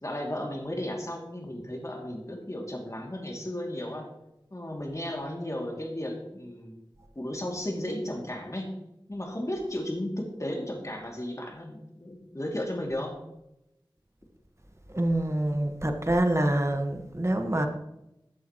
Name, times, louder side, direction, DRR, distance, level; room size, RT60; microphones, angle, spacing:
voice 1, 0.0-4.1 4.5-6.8 7.1-8.7 9.1-13.1, left 1 dB, 35° left, 0 dB, 2.5 m, -34 dB
voice 2, 14.9-17.7, right 1 dB, 35° right, 5 dB, 1.4 m, -26 dB
14.0 x 8.6 x 3.0 m, 0.87 s
wide cardioid pair, 50°, 9 cm